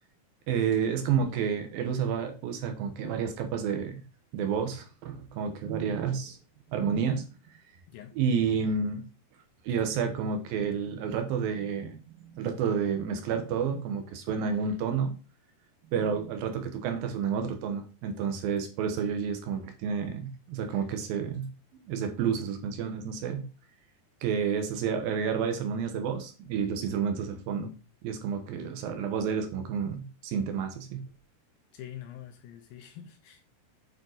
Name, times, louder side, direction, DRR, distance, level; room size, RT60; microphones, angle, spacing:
voice 1, 0.5-4.0 4.3-6.4 6.7-7.3 8.2-9.0 9.6-15.1 15.9-21.5 21.9-23.4 24.2-27.7 28.0-31.0, right 6 dB, 70° right, 2.6 m, -30 dB
voice 2, 7.9-8.2 31.7-33.4, left 11 dB, 75° left, 2.3 m, -45 dB
9.2 x 4.6 x 4.0 m
omnidirectional pair, 4.8 m